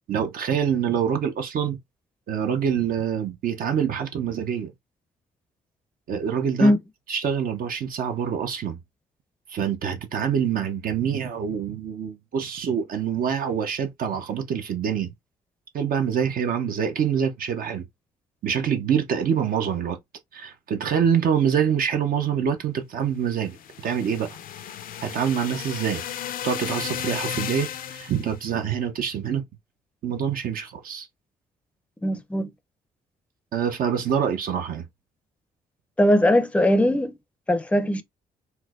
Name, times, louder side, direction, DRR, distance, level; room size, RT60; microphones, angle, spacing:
voice 1, 0.1-1.8 2.3-4.7 6.1-6.7 7.1-8.8 9.5-15.1 15.7-17.8 18.4-20.0 20.3-23.6 23.8-24.4 25.0-26.0 26.4-29.4 30.0-31.1 33.5-34.9, right 8 dB, 65° right, 0.7 m, -25 dB
sound 1, 23.4-28.4, left 10 dB, 65° left, 0.5 m, -34 dB
voice 2, 32.0-32.5 36.0-37.1 37.5-38.0, left 1 dB, 10° left, 0.5 m, -20 dB
4.3 x 2.2 x 2.4 m
cardioid pair, 75°, 16 cm